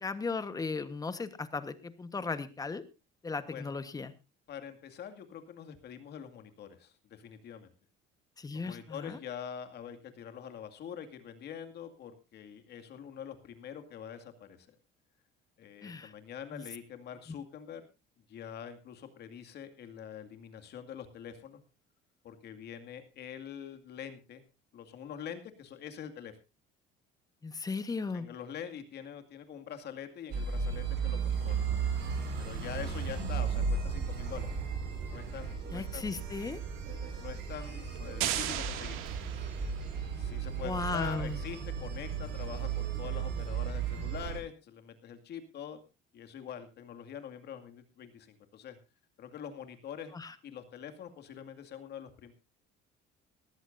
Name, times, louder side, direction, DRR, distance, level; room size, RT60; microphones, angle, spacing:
voice 1, 0.0-2.8 3.2-4.1 8.4-9.2 15.8-16.1 16.5-16.6 27.4-28.3 35.7-36.6 40.6-41.4 50.1-50.3, left 4 dB, 15° left, 11 dB, 1.2 m, -36 dB
voice 2, 4.5-7.7 8.5-14.8 15.6-17.9 18.3-21.6 22.2-24.4 24.7-26.3 28.1-31.6 32.4-34.5 35.1-36.4 37.2-39.0 40.1-45.8 46.1-48.8 49.2-50.1 50.4-52.3, left 8 dB, 55° left, 7 dB, 2.3 m, -45 dB
sound 1, 30.3-44.4, right 6 dB, 55° right, 5.3 m, -35 dB
sound 2, 38.2-40.0, right 12 dB, 85° right, 2.3 m, -35 dB
19.5 x 14.5 x 2.7 m, 0.29 s
cardioid pair, 145°, 21 cm